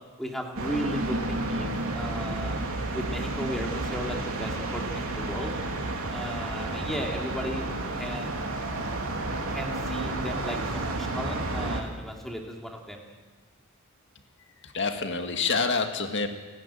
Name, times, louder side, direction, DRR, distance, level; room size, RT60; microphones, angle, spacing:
voice 1, 0.2-2.6 2.9-5.5 6.1-7.7 8.0-8.8 9.5-13.0, equal, ahead, 0 dB, 2.9 m, -35 dB
sound 1, 0.6-11.8, right 2 dB, 75° right, 3.2 m, -31 dB
voice 2, 14.6-16.3, left 4 dB, 55° left, 6 dB, 1.9 m, -27 dB
29.5 x 11.0 x 9.1 m, 1.4 s
head